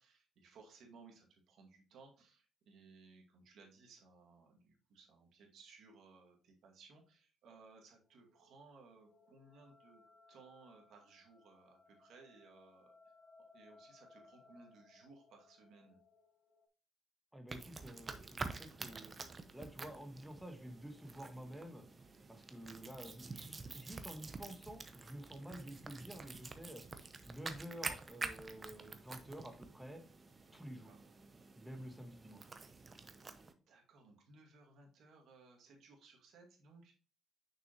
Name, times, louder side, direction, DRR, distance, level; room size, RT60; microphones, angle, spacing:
voice 1, 0.0-10.0 10.3-12.9 13.5-16.0 30.5-31.0 33.5-37.0, right 4 dB, 70° right, 2 dB, 2.0 m, -61 dB
sound 1, 8.0-16.7, left 3 dB, 30° left, 1.2 m, -65 dB
voice 2, 17.3-19.1 19.5-21.8 22.3-26.8 27.2-30.0 30.5-30.9 31.5-32.4, equal, 5° right, 4 dB, 1.3 m, -50 dB
sound 2, 17.5-33.5, right 3 dB, 25° right, 0.7 m, -48 dB
6.4 x 6.1 x 2.9 m, 0.37 s
cardioid pair, 130°, 0 cm